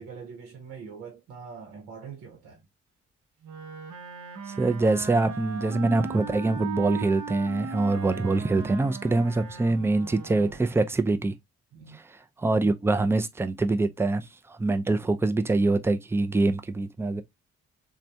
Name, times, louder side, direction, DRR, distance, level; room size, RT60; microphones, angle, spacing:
voice 1, 0.0-2.6 11.7-12.0, right 6 dB, 85° right, 0.9 m, -43 dB
Wind instrument woodwind instrument, 3.4-10.8, right 5 dB, 55° right, 0.8 m, -38 dB
voice 2, 4.5-11.4 12.4-17.2, right 2 dB, 5° right, 0.4 m, -24 dB
3.2 x 2.2 x 2.6 m
hypercardioid pair, 40°, 36 cm